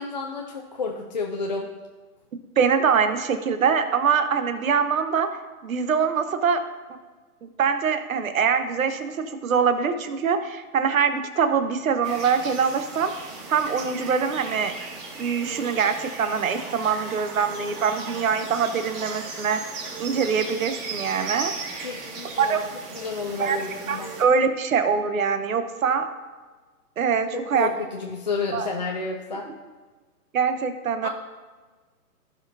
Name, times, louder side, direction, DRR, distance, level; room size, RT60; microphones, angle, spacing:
voice 1, 0.0-1.7 21.8-22.6 22.9-24.1 27.5-29.5 31.0-31.1, left 4 dB, 30° left, 0 dB, 0.4 m, -30 dB
voice 2, 2.6-5.3 5.6-6.6 7.4-13.1 13.5-14.7 15.2-19.6 20.0-21.5 22.4-22.7 23.4-23.6 23.9-26.1 27.0-27.7 28.5-28.7 30.3-31.1, right 6 dB, 65° right, 9 dB, 1.1 m, -23 dB
sound 1, 12.0-24.2, right 4 dB, 25° right, 2.3 m, -37 dB
15.5 x 5.4 x 2.6 m, 1.4 s
hypercardioid pair, 145°, 45 cm